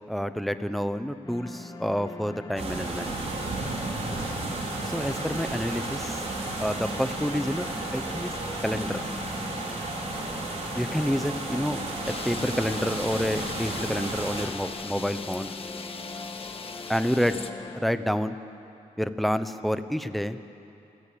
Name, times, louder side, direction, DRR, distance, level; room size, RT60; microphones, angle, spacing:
voice 1, 0.1-3.1 4.8-6.2 6.6-7.6 7.9-8.3 8.6-9.0 10.8-11.8 12.1-15.5 16.9-17.4 17.8-18.4 19.0-20.4, equal, ahead, 10 dB, 1.0 m, -28 dB
sound 1, 1.2-17.8, left 3 dB, 30° left, 2.1 m, -42 dB
sound 2, 2.6-14.5, right 2 dB, 55° right, 4.0 m, -33 dB
sound 3, 12.0-17.5, left 5 dB, 45° left, 1.4 m, -39 dB
28.5 x 16.0 x 8.8 m, 2.8 s
wide cardioid pair, 115°, 13 cm